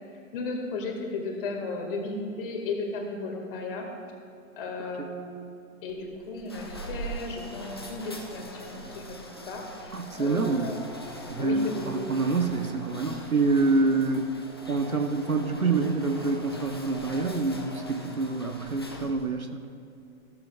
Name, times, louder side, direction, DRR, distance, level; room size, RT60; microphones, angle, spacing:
voice 1, 0.1-3.9 4.6-5.5 5.8-10.8 11.4-12.1, left 3 dB, 40° left, 2 dB, 1.9 m, -35 dB
sound 1, 5.9-19.4, equal, 20° left, 0.3 m, -42 dB
voice 2, 9.9-10.7 11.3-14.3 14.7-19.6, right 3 dB, 85° right, 6 dB, 1.1 m, -26 dB
14.5 x 13.0 x 2.3 m, 2.7 s
figure-of-eight pair, 120°, 41 cm